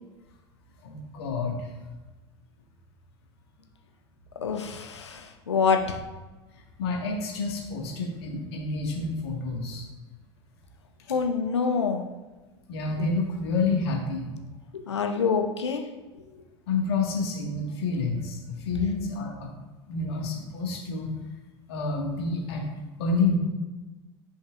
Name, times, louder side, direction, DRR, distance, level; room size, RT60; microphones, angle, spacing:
voice 1, 0.8-1.7 6.8-9.8 12.7-14.3 16.7-18.4 18.7-19.5 19.9-21.1 21.7-22.6 23.0-23.4, left 3 dB, 65° left, -1 dB, 1.9 m, -28 dB
voice 2, 4.4-6.0 11.1-12.1 14.7-15.8, left 5 dB, 80° left, 4 dB, 0.7 m, -26 dB
9.6 x 5.3 x 2.6 m, 1.2 s
figure-of-eight pair, 75°, 14 cm